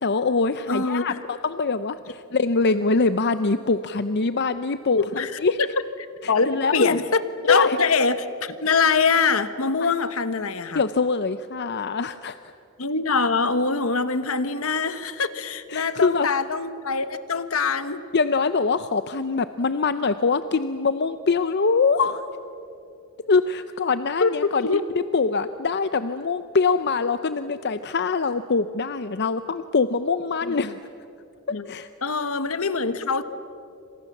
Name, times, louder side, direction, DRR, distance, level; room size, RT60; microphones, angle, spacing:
voice 1, 0.0-5.6 6.2-7.0 7.5-7.8 9.8-9.9 10.7-12.4 15.7-16.3 18.1-22.2 23.2-24.7 25.1-30.7 31.7-31.9, left 4 dB, 50° left, 12 dB, 0.6 m, -23 dB
voice 2, 0.7-1.2 5.0-5.3 5.6-5.7 6.3-10.8 12.8-18.0 24.2-24.3 24.6-24.8 30.4-30.8 31.5-31.7 32.0-33.2, left 4 dB, 65° left, 12 dB, 1.2 m, -23 dB
28.0 x 26.5 x 7.2 m, 2.7 s
head